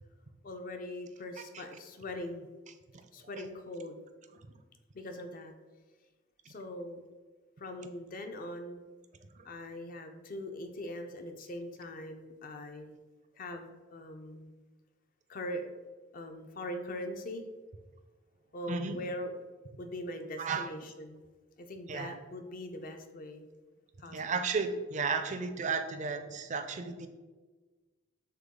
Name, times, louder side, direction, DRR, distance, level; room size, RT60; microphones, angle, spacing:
voice 1, 0.4-2.5 3.1-4.0 4.9-5.5 6.5-7.1 7.6-8.8 9.4-13.0 13.4-14.5 15.3-15.6 16.1-17.4 18.5-19.3 19.8-21.2 21.6-23.5 24.0-24.4, left 1 dB, 45° left, 5 dB, 0.5 m, -41 dB
voice 2, 18.7-19.0 20.4-20.7 21.9-22.1 24.1-27.1, right 4 dB, 40° right, 8 dB, 0.4 m, -33 dB
6.5 x 2.2 x 3.6 m, 1.3 s
head